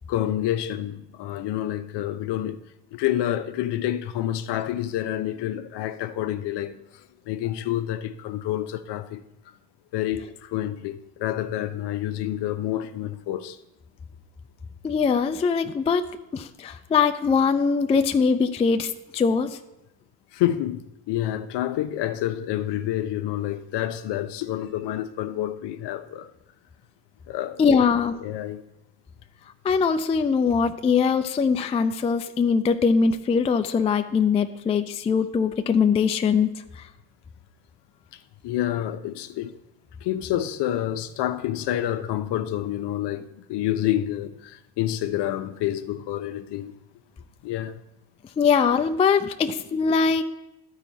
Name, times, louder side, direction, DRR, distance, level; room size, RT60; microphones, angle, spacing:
voice 1, 0.1-2.6 2.9-9.2 9.9-13.6 20.3-26.3 27.3-27.8 28.2-28.6 38.1-39.5 40.0-46.8 47.4-47.8, left 12 dB, 55° left, 0.8 m, -28 dB
voice 2, 14.8-16.0 16.3-19.6 27.6-28.2 29.6-36.5 36.8-36.9 48.4-50.2, left 5 dB, 15° left, 0.3 m, -22 dB
12.0 x 4.8 x 4.0 m
hypercardioid pair, 65°, 49 cm